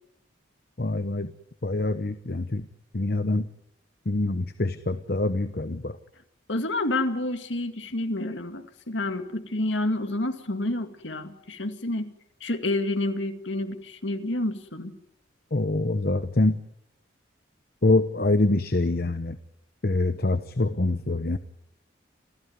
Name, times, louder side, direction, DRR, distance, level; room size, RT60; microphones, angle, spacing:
voice 1, 0.8-1.3 1.6-2.7 2.9-3.5 4.1-6.0 15.5-16.6 17.8-19.4 19.8-21.4, left 2 dB, 50° left, 11 dB, 0.9 m, -25 dB
voice 2, 6.5-12.1 12.4-15.0, left 2 dB, 75° left, 7 dB, 2.1 m, -29 dB
28.5 x 15.0 x 9.5 m, 0.83 s
head